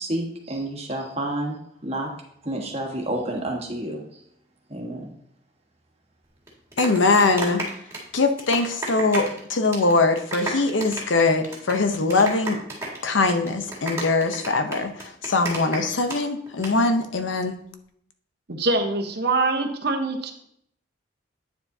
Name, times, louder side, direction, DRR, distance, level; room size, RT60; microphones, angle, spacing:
voice 1, 0.0-2.1 2.4-4.2 4.7-5.1, right 1 dB, 35° right, 1 dB, 1.4 m, -30 dB
sound 1, 6.5-9.4 9.6-9.9 10.2-16.2 16.5-16.7, right 2 dB, 15° right, 2.0 m, -32 dB
voice 2, 6.8-7.6 8.1-12.6 13.0-14.9 15.3-17.5, left 3 dB, 80° left, 7 dB, 0.8 m, -22 dB
voice 3, 18.5-20.3, right 2 dB, 60° right, 4 dB, 1.0 m, -24 dB
9.2 x 7.2 x 2.8 m, 0.70 s
head